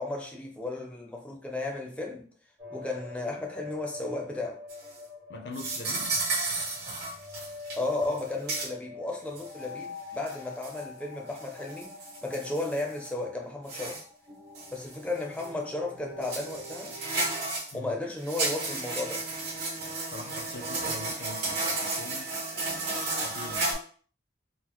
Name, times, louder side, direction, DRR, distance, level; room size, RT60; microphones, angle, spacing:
voice 1, 0.0-2.3 2.7-4.6 7.8-11.9 12.2-14.0 14.7-16.9 17.7-19.2, left 2 dB, 5° left, 0.5 m, -34 dB
sound 1, 2.6-17.6, left 3 dB, 85° right, 1.6 m, -46 dB
sound 2, 4.7-5.0 5.5-7.8 8.0-8.2 8.5-8.7 9.4-9.5 10.3-10.8 11.4-13.1 13.7-14.0 14.6-14.9 15.4-15.5 16.2-17.7 18.2-23.7, right 3 dB, 65° right, 1.3 m, -33 dB
voice 2, 5.3-6.2 17.7-17.9 20.1-22.3 23.2-23.7, left 2 dB, 70° left, 0.6 m, -42 dB
3.8 x 2.0 x 2.9 m
head